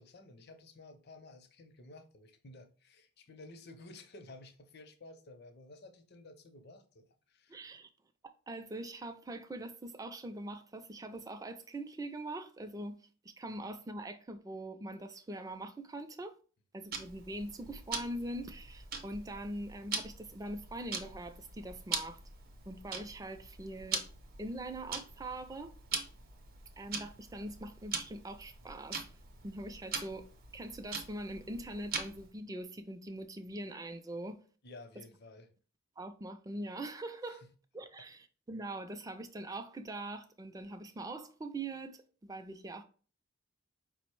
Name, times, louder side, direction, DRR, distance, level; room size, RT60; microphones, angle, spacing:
voice 1, 0.0-7.6 34.6-35.5 37.3-37.4, left 2 dB, 50° left, 0.6 m, -53 dB
voice 2, 7.5-7.9 8.2-16.4 16.7-22.2 22.7-24.0 24.4-25.7 26.8-29.0 29.4-30.3 30.5-34.4 36.0-37.4 37.7-42.8, right 1 dB, 15° right, 0.3 m, -42 dB
Tick-tock, 16.9-32.3, right 5 dB, 45° right, 0.7 m, -42 dB
4.8 x 2.0 x 4.5 m
head